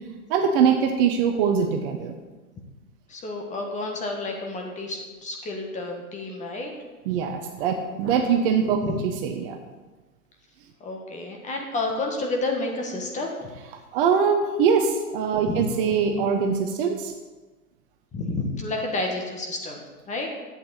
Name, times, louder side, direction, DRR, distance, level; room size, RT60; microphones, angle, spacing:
voice 1, 0.3-2.1 7.1-8.8 9.2-9.6 13.9-17.1, right 6 dB, 40° right, 5 dB, 1.0 m, -22 dB
voice 2, 3.1-6.7 8.8-9.0 10.8-13.5 15.5-15.6 18.1-20.3, left 2 dB, 15° left, 1 dB, 1.5 m, -30 dB
11.0 x 8.5 x 4.1 m, 1.2 s
figure-of-eight pair, 110°, 45 cm